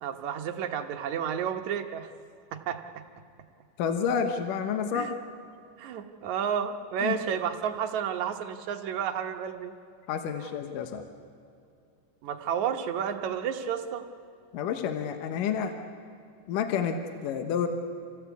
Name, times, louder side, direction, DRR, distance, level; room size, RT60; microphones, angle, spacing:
voice 1, 0.0-2.1 2.5-3.0 4.9-5.2 5.8-9.7 12.2-14.0, right 8 dB, 65° right, 6 dB, 2.2 m, -31 dB
voice 2, 3.8-5.1 7.0-7.2 10.1-11.0 14.5-15.8 16.5-17.7, left 7 dB, 75° left, 7 dB, 2.6 m, -29 dB
27.0 x 16.0 x 8.3 m, 2.4 s
omnidirectional pair, 4.0 m